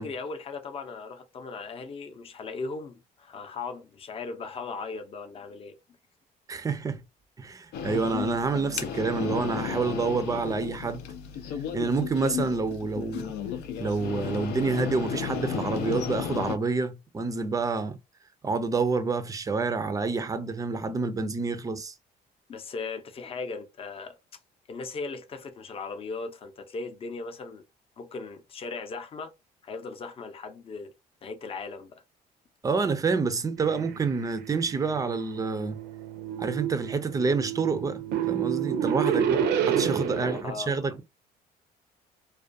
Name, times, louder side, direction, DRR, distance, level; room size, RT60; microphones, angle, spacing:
voice 1, 0.0-5.8 22.5-24.2 24.7-27.6 28.0-29.3 29.6-30.9 31.2-32.0 40.0-40.9, left 4 dB, 35° left, 0.6 m, -38 dB
voice 2, 6.5-7.0 7.4-11.0 11.7-13.3 13.8-18.0 18.4-21.9 32.6-35.8 36.4-41.0, right 4 dB, 20° right, 0.4 m, -28 dB
sound 1, 7.7-16.6, left 8 dB, 80° left, 0.5 m, -33 dB
sound 2, 33.6-40.4, right 8 dB, 85° right, 0.5 m, -30 dB
2.3 x 2.2 x 2.5 m
cardioid pair, 110°, 17 cm